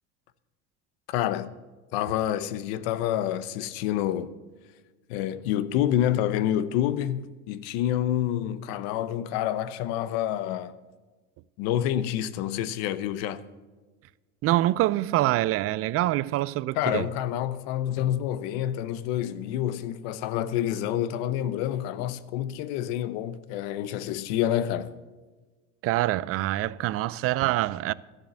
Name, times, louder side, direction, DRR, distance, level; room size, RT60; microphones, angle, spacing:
voice 1, 1.1-1.5 1.9-4.3 5.1-10.8 11.6-13.4 16.8-24.9, left 11 dB, 85° left, 0.8 m, -28 dB
voice 2, 14.4-17.1 25.8-27.9, right 15 dB, 50° right, 0.5 m, -25 dB
12.5 x 7.2 x 7.7 m
cardioid pair, 120°, 30 cm